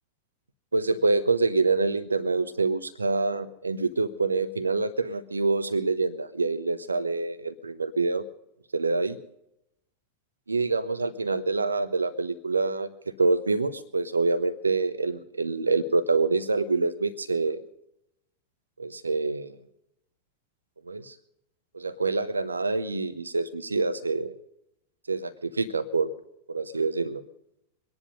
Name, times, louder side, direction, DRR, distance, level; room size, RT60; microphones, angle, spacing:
voice 1, 0.7-8.2 8.7-9.2 10.5-12.9 13.2-17.6 18.8-19.5 20.9-21.1 21.7-24.4 25.1-26.1 26.5-27.2, right 3 dB, 80° right, 13 dB, 1.1 m, -26 dB
24.0 x 10.5 x 5.2 m, 0.82 s
figure-of-eight pair, 90°, 0 cm